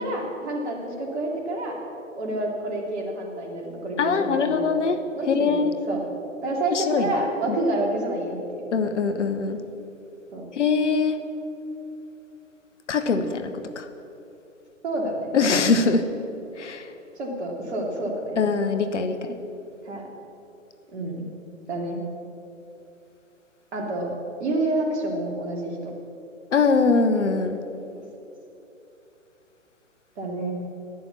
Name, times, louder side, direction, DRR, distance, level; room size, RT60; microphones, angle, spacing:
voice 1, 0.0-1.8 2.2-4.9 5.1-6.0 6.4-8.6 10.3-10.5 14.8-15.3 17.2-18.4 19.8-20.1 20.9-21.2 21.7-22.0 23.7-24.1 24.4-25.9 27.9-28.0 30.2-30.5, right 1 dB, 55° right, 0 dB, 2.7 m, -28 dB
voice 2, 4.0-5.7 6.7-7.1 7.5-7.6 8.7-9.6 10.5-11.2 12.9-13.9 15.3-16.1 16.6-16.8 18.4-19.4 26.5-27.6, left 4 dB, 60° left, 9 dB, 1.1 m, -22 dB
11.0 x 9.0 x 7.1 m, 2.9 s
figure-of-eight pair, 130°, 40 cm